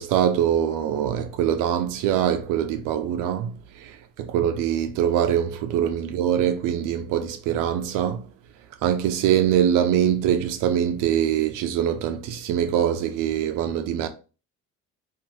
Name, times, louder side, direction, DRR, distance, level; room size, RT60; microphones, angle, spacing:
voice 1, 0.0-3.5 3.8-8.2 8.8-14.1, right 9 dB, 75° right, 0.5 m, -23 dB
2.7 x 2.4 x 3.0 m
supercardioid pair, 75°, 32 cm